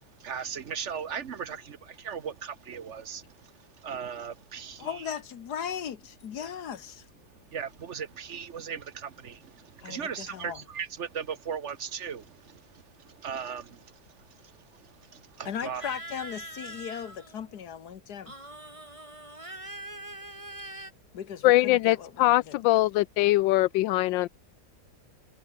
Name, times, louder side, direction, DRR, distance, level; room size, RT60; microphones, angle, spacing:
voice 1, 0.0-5.1 6.4-6.5 7.5-15.8, right 7 dB, 45° right, 1.1 m, -38 dB
voice 2, 4.8-7.1 9.8-10.6 15.4-18.3 21.1-22.6, left 8 dB, 60° left, 1.6 m, -37 dB
sound 1, 15.8-17.6 18.3-20.9, right 1 dB, 15° right, 3.5 m, -43 dB
voice 3, 21.4-24.3, left 17 dB, 80° left, 1.3 m, -22 dB
omnidirectional pair, 2.0 m